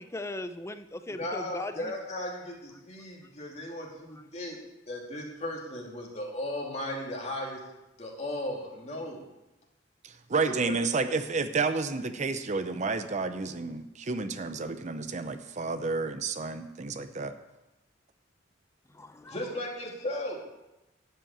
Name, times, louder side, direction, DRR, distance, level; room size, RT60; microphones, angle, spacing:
voice 1, 0.0-1.9 18.9-19.4, left 2 dB, 15° left, 10 dB, 0.5 m, -38 dB
voice 2, 1.1-4.6 4.9-7.6 8.0-9.2 10.4-10.5 19.3-20.4, left 1 dB, 35° left, -1 dB, 2.5 m, -36 dB
voice 3, 10.0-17.3, right 4 dB, 40° right, 10 dB, 0.6 m, -31 dB
12.0 x 5.7 x 8.8 m, 0.98 s
head